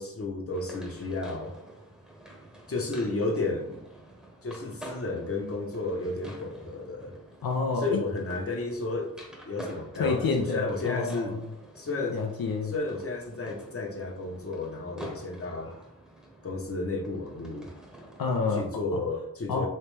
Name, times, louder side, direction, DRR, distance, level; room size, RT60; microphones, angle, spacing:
voice 1, 0.0-1.5 2.7-3.8 4.4-7.1 7.8-9.1 9.5-11.4 11.8-12.2 12.6-15.7 16.4-17.7 18.5-19.7, left 3 dB, 40° left, 0 dB, 0.8 m, -32 dB
sound 1, 0.5-18.6, right 1 dB, ahead, 0.9 m, -48 dB
voice 2, 7.4-8.0 10.0-11.4 12.1-12.7 18.2-18.6 19.5-19.7, left 4 dB, 75° left, 1 dB, 0.6 m, -28 dB
3.2 x 2.9 x 3.2 m, 0.78 s
wide cardioid pair, 75°, 35 cm